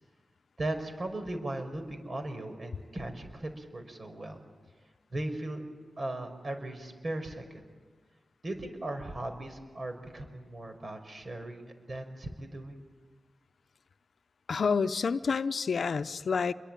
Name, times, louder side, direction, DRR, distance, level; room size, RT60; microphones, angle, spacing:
voice 1, 0.6-4.4 5.1-5.6 6.0-7.6 8.4-12.8, right 1 dB, 45° right, 6 dB, 5.5 m, -38 dB
voice 2, 14.5-16.5, left 5 dB, 75° left, 12 dB, 0.8 m, -28 dB
29.0 x 22.5 x 9.2 m, 1.4 s
cardioid pair, 65°, 0 cm